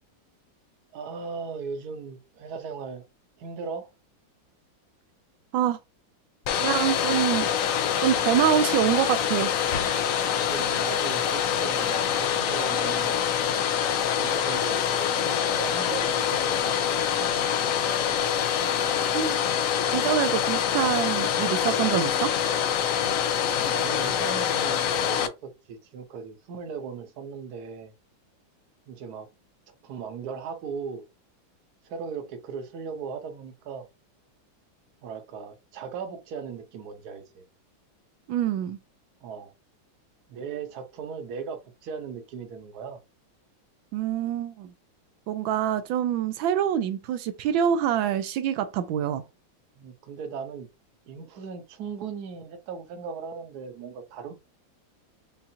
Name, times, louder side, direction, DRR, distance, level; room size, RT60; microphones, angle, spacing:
voice 1, 0.9-3.0 3.4-3.9 10.2-13.1 14.1-17.9 23.6-27.9 28.9-29.3 29.8-31.0 31.8-33.9 35.0-37.4 39.2-39.5 40.3-43.0 49.8-50.7 51.1-54.3, right 6 dB, 60° right, 1.2 m, -38 dB
Domestic sounds home sounds, 6.4-25.3, left 8 dB, 85° left, 0.7 m, -25 dB
voice 2, 6.6-7.5 8.0-9.5 19.1-19.4 19.9-22.4 38.3-38.8 43.9-44.7 45.3-49.2, right 10 dB, 85° right, 1.3 m, -25 dB
5.5 x 2.4 x 2.7 m
omnidirectional pair, 2.1 m